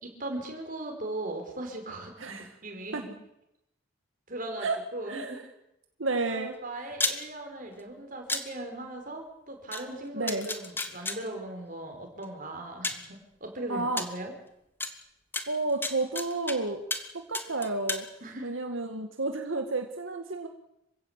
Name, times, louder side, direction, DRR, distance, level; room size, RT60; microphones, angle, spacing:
voice 1, 0.0-3.2 4.3-5.4 6.3-14.3 18.2-18.5, right 1 dB, 40° right, 4 dB, 5.4 m, -38 dB
voice 2, 2.2-2.5 2.9-3.0 4.6-4.8 5.1-5.4 6.0-6.9 10.1-10.5 13.7-14.0 15.5-16.8 17.1-18.1 18.4-20.5, right 3 dB, 80° right, 5 dB, 2.0 m, -31 dB
sound 1, 6.9-7.2 8.3-8.4 9.7-9.8 10.3-11.2 12.2-12.3 12.8-13.0 14.0-14.1 14.8-14.9 15.3-16.5 16.9-17.1 17.3-18.0, left 2 dB, 10° left, 1.9 m, -31 dB
27.0 x 16.5 x 8.4 m, 0.84 s
head